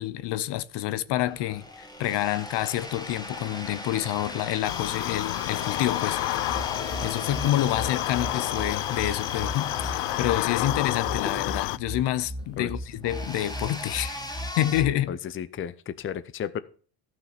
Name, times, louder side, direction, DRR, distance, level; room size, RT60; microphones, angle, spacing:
voice 1, 0.0-14.2 14.6-15.1, left 13 dB, 65° left, 0.9 m, -28 dB
sound 1, 1.1-14.8, left 1 dB, 10° left, 1.8 m, -39 dB
sound 2, 4.6-11.8, left 20 dB, 85° left, 0.6 m, -30 dB
sound 3, 6.3-15.1, equal, 15° right, 2.1 m, -38 dB
voice 2, 15.1-16.6, left 8 dB, 30° left, 0.6 m, -33 dB
14.0 x 6.3 x 5.9 m
cardioid pair, 140°, 44 cm